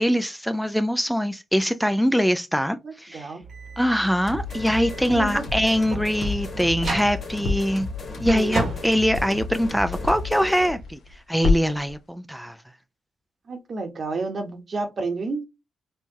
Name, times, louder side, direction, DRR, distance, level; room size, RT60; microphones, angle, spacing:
voice 1, 0.0-3.3 3.8-7.9 8.2-12.6, equal, ahead, 0.4 m, -23 dB
voice 2, 2.8-3.4 5.1-5.4 8.2-8.6 13.5-15.4, right 3 dB, 50° right, 1.0 m, -30 dB
sound 1, 3.4-10.0, right 4 dB, 70° right, 1.2 m, -36 dB
sound 2, 4.3-10.8, left 4 dB, 55° left, 1.4 m, -34 dB
sound 3, 4.8-5.8 6.2-10.4 10.7-11.2 11.4-11.9, left 4 dB, 75° left, 0.8 m, -29 dB
4.4 x 2.2 x 2.8 m
supercardioid pair, 60°, 0 cm